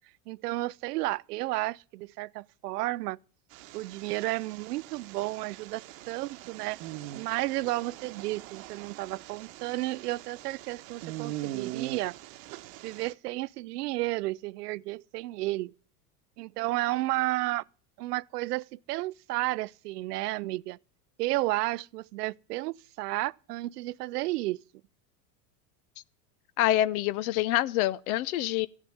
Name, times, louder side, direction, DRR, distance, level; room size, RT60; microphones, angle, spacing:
voice 1, 0.3-3.2 3.7-6.8 7.1-12.1 12.8-15.7 16.4-17.6 18.0-20.8 21.2-24.6, right 19 dB, 90° right, 0.6 m, -32 dB
sound 1, 3.5-13.1, right 15 dB, 60° right, 1.0 m, -42 dB
voice 2, 26.6-28.7, left 14 dB, 70° left, 0.7 m, -26 dB
15.5 x 7.3 x 9.4 m
supercardioid pair, 125°, 45 cm